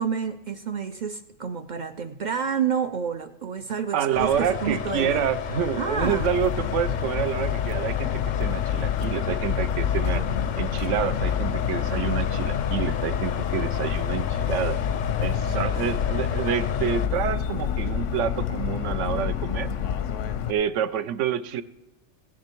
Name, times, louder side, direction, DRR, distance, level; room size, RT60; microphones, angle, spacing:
voice 1, 0.0-4.3 4.6-5.3 5.8-6.3, right 7 dB, 55° right, 9 dB, 0.5 m, -29 dB
voice 2, 3.9-10.3 10.6-14.8 15.2-19.7 20.5-21.6, right 9 dB, 80° right, 13 dB, 1.0 m, -28 dB
sound 1, 4.1-17.1, left 8 dB, 55° left, 0.5 m, -32 dB
Motor vehicle (road) / Siren, 6.0-20.5, left 8 dB, 85° left, 1.0 m, -28 dB
16.5 x 10.0 x 4.5 m, 0.96 s
omnidirectional pair, 1.2 m